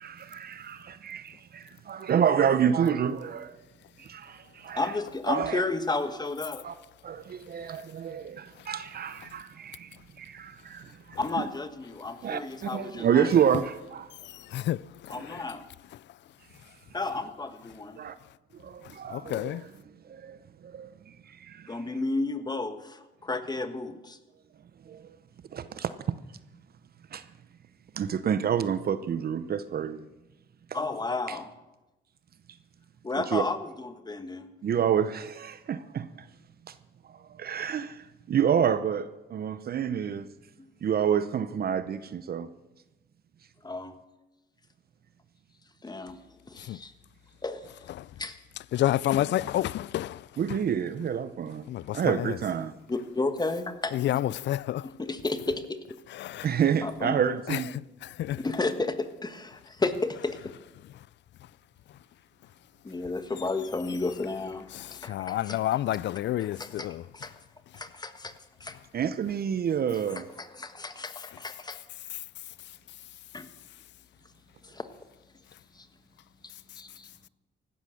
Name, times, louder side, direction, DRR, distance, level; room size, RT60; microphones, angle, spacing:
voice 1, 0.0-3.6 4.0-4.8 5.3-5.6 6.6-6.7 7.0-11.5 12.2-14.1 18.0-18.2 18.5-19.5 20.0-21.8 24.9-25.1 25.5-26.2 27.1-27.3 27.9-30.1 31.3-31.4 33.2-33.4 34.6-36.3 36.7-36.8 37.1-40.3 40.8-42.5 50.4-51.7 51.9-52.7 56.4-57.7 68.9-70.3, right 8 dB, 50° right, 0.7 m, -28 dB
voice 2, 4.7-6.6 11.2-13.3 15.1-15.6 16.9-18.0 21.7-24.2 30.7-31.5 33.0-34.5 40.6-40.7 43.6-43.9 45.8-46.2 46.5-46.9 47.4-47.7 48.2-48.4 52.9-54.2 54.8-55.8 56.8-57.1 58.4-60.4 62.8-64.7 65.0-65.6 66.4-66.9 67.1-67.3 67.7-68.3 68.6-68.8 70.1-71.8 73.3-73.5 74.6-74.9 75.7-75.9 76.4-77.1, left 3 dB, 20° left, 1.4 m, -32 dB
voice 3, 14.2-15.5 18.8-19.6 46.6-46.8 47.9-48.1 48.7-50.3 51.7-52.4 53.9-54.9 56.1-56.5 57.5-58.4 61.0-61.1 64.7-67.0 72.1-72.2, left 13 dB, 65° left, 0.4 m, -30 dB
16.0 x 12.5 x 6.5 m
cardioid pair, 90°, 20 cm